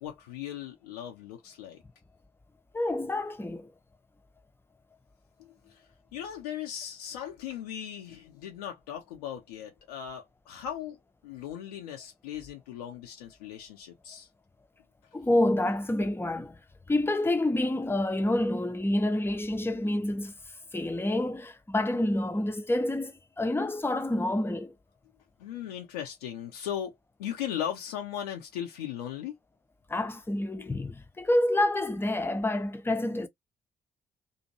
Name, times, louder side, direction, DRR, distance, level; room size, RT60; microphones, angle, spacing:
voice 1, 0.0-1.8 5.4-5.8 6.1-11.0 11.2-14.3 25.4-26.9 27.2-29.4 30.6-30.7, left 10 dB, 75° left, 0.6 m, -38 dB
voice 2, 2.7-3.7 15.1-16.6 16.9-20.3 20.7-24.7 29.9-33.3, left 1 dB, 10° left, 0.6 m, -28 dB
2.6 x 2.5 x 2.8 m
figure-of-eight pair, 40°, 20 cm